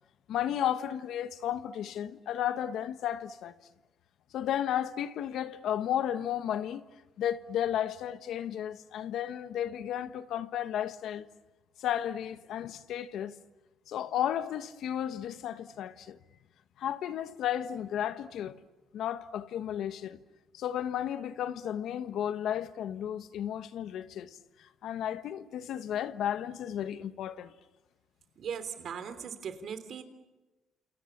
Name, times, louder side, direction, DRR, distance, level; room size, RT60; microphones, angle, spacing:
voice 1, 0.3-3.5 4.3-6.9 7.2-11.3 11.8-13.3 13.9-16.2 16.8-18.6 18.9-20.2 20.5-27.5, left 10 dB, 75° left, 1.2 m, -33 dB
voice 2, 28.4-30.0, right 7 dB, 60° right, 3.2 m, -39 dB
28.5 x 28.5 x 7.3 m
cardioid pair, 100°, 0 cm